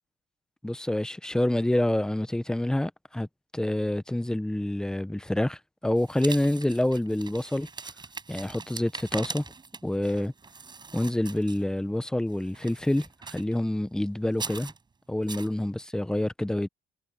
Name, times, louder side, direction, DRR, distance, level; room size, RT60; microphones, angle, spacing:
voice 1, 0.6-3.3 3.5-7.7 8.3-9.5 9.8-10.3 10.9-14.7 15.1-16.7, left 1 dB, 5° left, 0.8 m, -27 dB
sound 1, 5.9-11.9 12.3-13.6 14.3-14.8 15.3-15.5, right 4 dB, 25° right, 7.9 m, -41 dB
cardioid pair, 110°, 17 cm